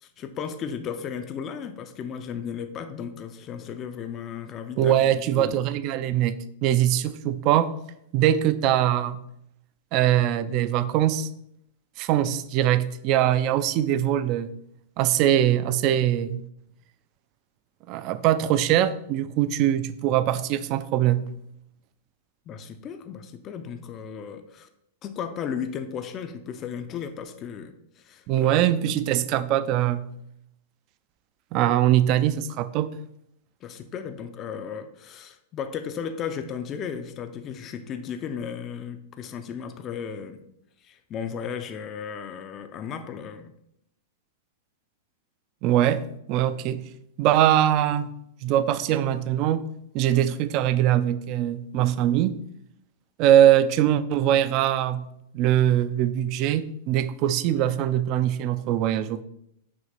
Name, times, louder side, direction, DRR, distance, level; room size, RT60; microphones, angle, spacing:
voice 1, 0.0-5.1 5.3-5.6 22.5-24.7 25.0-28.6 33.6-40.4 40.8-43.5, left 7 dB, 30° left, 8 dB, 0.5 m, -35 dB
voice 2, 4.8-7.7 8.1-9.2 9.9-11.3 12.0-14.5 15.0-16.4 17.9-21.2 28.3-30.1 31.5-32.9 45.6-46.0 46.3-46.8 47.2-48.1 48.4-49.6 49.9-52.3 53.2-55.0 55.3-59.2, right 11 dB, 45° right, 14 dB, 0.4 m, -22 dB
6.1 x 2.8 x 5.6 m, 0.75 s
hypercardioid pair, 135°, 0 cm